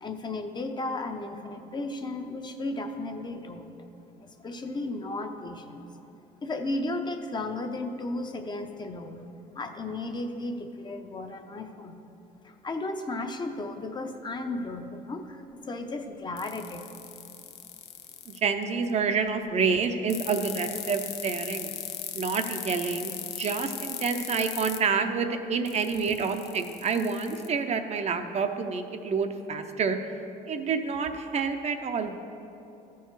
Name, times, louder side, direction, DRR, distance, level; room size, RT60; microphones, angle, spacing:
voice 1, 0.0-3.7 4.2-5.9 6.4-9.3 9.5-11.9 12.4-16.8, left 2 dB, 25° left, 5 dB, 0.6 m, -34 dB
sound 1, 16.4-18.4 20.1-24.8 25.7-27.5, left 11 dB, 80° left, 0.6 m, -37 dB
voice 2, 18.3-21.7 22.1-30.0 30.5-32.1, right 5 dB, 40° right, 7 dB, 0.6 m, -28 dB
13.5 x 4.7 x 4.6 m, 2.8 s
cardioid pair, 110°, 17 cm